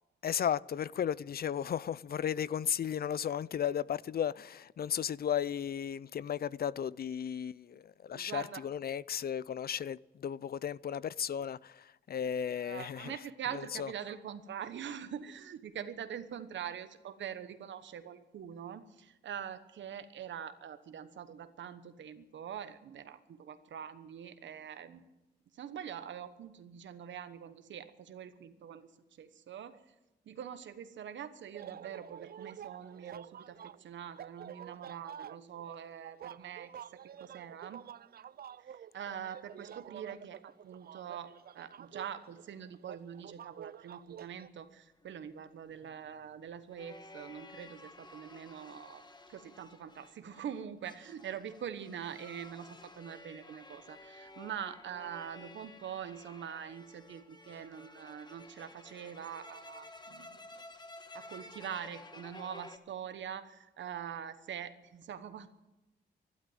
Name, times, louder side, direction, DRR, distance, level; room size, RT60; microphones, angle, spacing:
voice 1, 0.2-13.1 13.8-13.9, left 9 dB, 55° left, 0.5 m, -35 dB
voice 2, 8.1-8.6 12.5-25.0 25.5-28.9 29.2-29.9 30.3-36.7 37.2-37.9 38.6-60.4 61.1-65.5, right 8 dB, 80° right, 1.2 m, -44 dB
sound 1, 31.5-44.5, right 9 dB, 55° right, 0.4 m, -49 dB
sound 2, 45.0-62.8, left 2 dB, 25° left, 1.5 m, -53 dB
12.5 x 12.0 x 9.1 m
cardioid pair, 65°, 19 cm